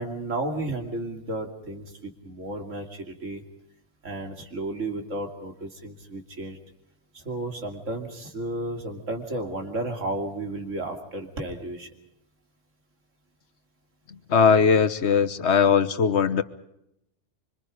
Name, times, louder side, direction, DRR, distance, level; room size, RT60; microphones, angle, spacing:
voice 1, 0.0-3.4 4.0-6.6 7.1-11.9, right 2 dB, 90° right, 4 dB, 3.1 m, -33 dB
voice 2, 14.3-16.4, left 6 dB, 65° left, 10 dB, 1.4 m, -19 dB
25.5 x 25.0 x 5.0 m, 0.80 s
omnidirectional pair, 1.3 m